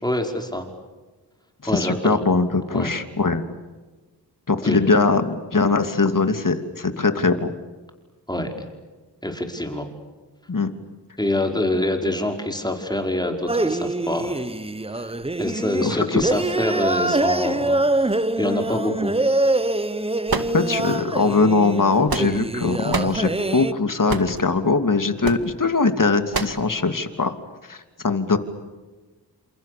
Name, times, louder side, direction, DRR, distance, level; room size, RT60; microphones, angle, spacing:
voice 1, 0.0-0.7 1.7-2.2 2.7-2.9 4.6-4.8 8.3-8.7 9.2-9.9 11.2-14.4 14.9-15.1 15.4-19.4, left 1 dB, 10° left, 4 dB, 5.4 m, -25 dB
voice 2, 1.6-3.4 4.5-7.5 10.5-10.7 15.8-16.2 20.5-27.3 27.7-28.4, left 4 dB, 50° left, 8 dB, 2.9 m, -21 dB
sound 1, 13.5-23.7, right 2 dB, 15° right, 0.8 m, -24 dB
sound 2, 20.3-21.0 21.8-22.5 22.9-23.2 24.1-24.4 25.2-25.5 26.3-26.6, right 5 dB, 55° right, 2.3 m, -27 dB
29.5 x 28.0 x 6.9 m, 1.3 s
wide cardioid pair, 65°, 42 cm